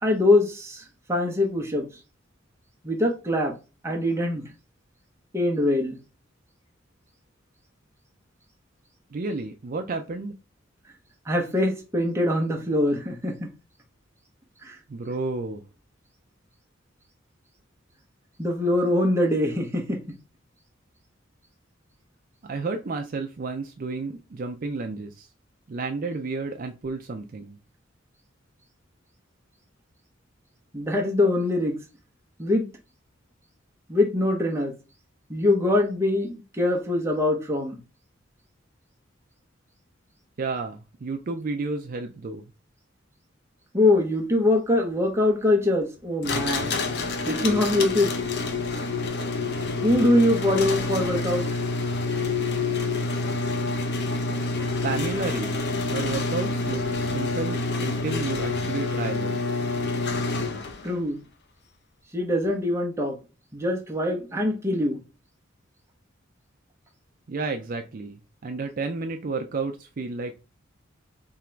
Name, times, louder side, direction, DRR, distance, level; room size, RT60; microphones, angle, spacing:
voice 1, 0.0-1.9 2.8-3.5 3.8-4.4 5.3-6.0 11.3-13.5 14.6-14.8 18.4-20.0 30.7-31.8 32.4-32.7 33.9-34.7 35.3-37.8 43.7-46.7 47.3-48.1 49.8-51.5 60.8-61.2 62.1-63.2 63.5-65.0, left 1 dB, 15° right, 0.9 m, -23 dB
voice 2, 9.1-10.3 14.9-15.6 22.4-25.3 25.7-27.6 40.4-42.5 54.8-55.5 55.9-59.4 67.3-70.3, right 3 dB, 45° right, 0.4 m, -31 dB
sound 1, 46.2-60.9, left 3 dB, 55° left, 0.7 m, -27 dB
3.7 x 2.9 x 4.4 m
head